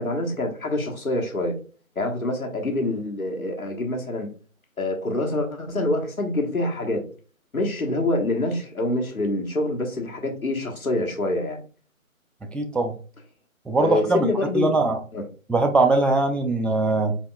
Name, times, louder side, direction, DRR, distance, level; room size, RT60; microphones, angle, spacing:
voice 1, 0.0-1.6 1.9-4.3 4.8-7.0 7.5-11.6 13.8-15.2, left 1 dB, 80° left, 2 dB, 1.4 m, -26 dB
voice 2, 12.5-13.0 13.7-14.3 14.5-15.0 15.5-17.2, right 2 dB, 5° left, 6 dB, 0.3 m, -21 dB
4.5 x 3.4 x 2.3 m, 0.37 s
figure-of-eight pair, 170°, 42 cm